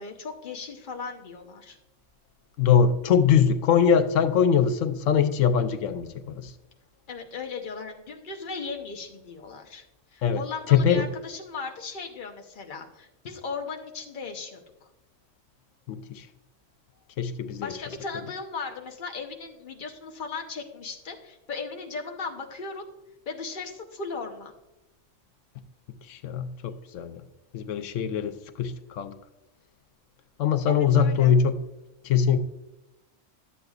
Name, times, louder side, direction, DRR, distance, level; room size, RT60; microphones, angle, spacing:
voice 1, 0.0-1.8 5.5-5.8 7.1-9.8 10.1-14.9 17.6-22.8 23.3-24.5 30.7-31.3, left 4 dB, 45° left, 3 dB, 1.0 m, -37 dB
voice 2, 2.6-6.1 6.3-6.5 10.2-10.4 10.7-11.0 15.9-16.2 17.2-17.7 26.1-27.2 27.5-29.1 30.4-31.6 32.0-32.4, left 7 dB, 90° left, 10 dB, 1.0 m, -22 dB
12.5 x 7.7 x 2.4 m, 0.99 s
omnidirectional pair, 1.3 m